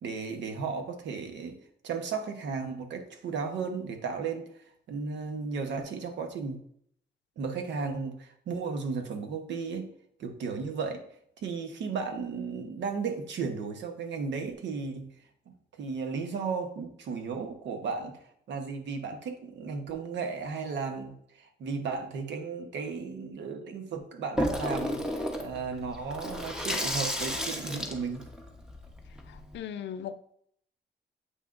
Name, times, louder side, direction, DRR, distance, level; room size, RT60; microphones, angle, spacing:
voice 1, 0.0-4.5 4.9-6.6 7.4-9.9 10.2-11.0 11.4-15.1 15.5-18.1 18.5-25.1 25.4-28.3, right 5 dB, 80° right, 6 dB, 1.1 m, -35 dB
Water tap faucet / Sink (filling or washing), 24.4-29.6, equal, 5° right, 1.1 m, -33 dB
voice 2, 29.3-30.3, left 8 dB, 80° left, 12 dB, 0.5 m, -39 dB
8.0 x 5.8 x 2.6 m, 0.67 s
cardioid pair, 100°, 18 cm